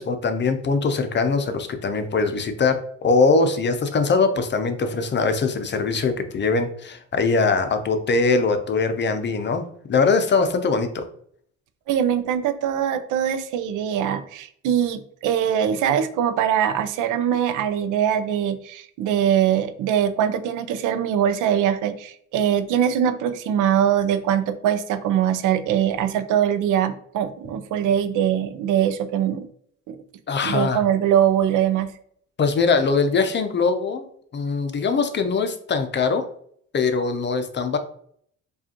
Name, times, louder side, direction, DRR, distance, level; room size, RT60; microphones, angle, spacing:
voice 1, 0.0-11.1 30.3-30.8 32.4-34.1 34.3-36.3 36.7-37.8, left 4 dB, 35° left, 8 dB, 0.5 m, -22 dB
voice 2, 11.9-29.5 29.9-30.0 30.4-31.9, right 9 dB, 85° right, 10 dB, 0.5 m, -22 dB
4.8 x 2.4 x 2.8 m, 0.64 s
cardioid pair, 90°, 30 cm